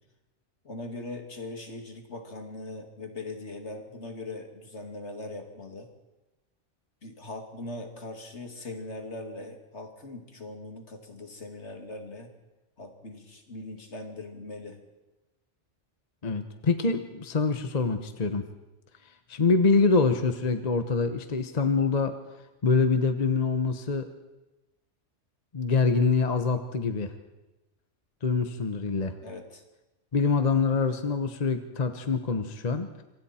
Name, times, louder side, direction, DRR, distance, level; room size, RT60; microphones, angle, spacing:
voice 1, 0.6-5.9 7.0-12.3 12.8-14.8 29.2-29.6, left 2 dB, 60° left, 4 dB, 2.6 m, -40 dB
voice 2, 16.2-18.4 19.3-22.1 22.6-24.1 25.5-27.1 28.2-29.1 30.1-32.9, left 4 dB, 35° left, 8 dB, 1.1 m, -25 dB
26.5 x 24.0 x 4.4 m, 1.0 s
omnidirectional pair, 1.3 m